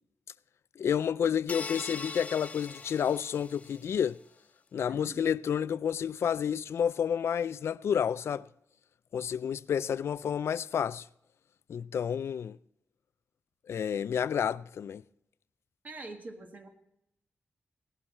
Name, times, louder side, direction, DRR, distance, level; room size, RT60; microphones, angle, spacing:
voice 1, 0.8-4.2 4.7-8.4 9.1-11.0 11.7-12.6 13.7-15.0, left 8 dB, 80° left, 0.4 m, -30 dB
sound 1, 1.5-4.0, left 4 dB, 30° left, 0.6 m, -41 dB
voice 2, 4.9-5.2 15.8-16.7, right 2 dB, 40° right, 1.6 m, -44 dB
18.0 x 11.5 x 4.3 m
wide cardioid pair, 150°, 4 cm